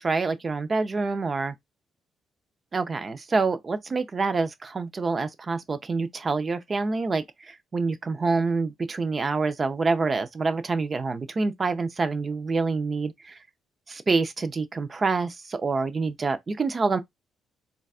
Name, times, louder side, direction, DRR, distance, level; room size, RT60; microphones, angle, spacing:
voice 1, 0.0-1.5 2.7-13.4 13.9-17.0, right 4 dB, 35° right, 0.5 m, -27 dB
3.9 x 2.3 x 2.3 m
cardioid pair, 90°, 0 cm